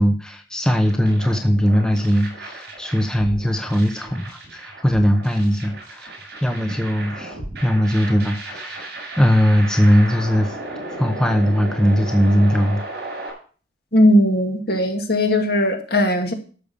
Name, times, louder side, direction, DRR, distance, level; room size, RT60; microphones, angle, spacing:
voice 1, 0.0-10.6 11.0-12.8, equal, 5° left, 5 dB, 0.8 m, -19 dB
sound 1, 0.8-13.3, right 2 dB, 55° right, 7.0 m, -35 dB
voice 2, 13.9-16.3, left 1 dB, 55° left, 4 dB, 2.1 m, -18 dB
12.5 x 6.6 x 6.8 m, 0.41 s
head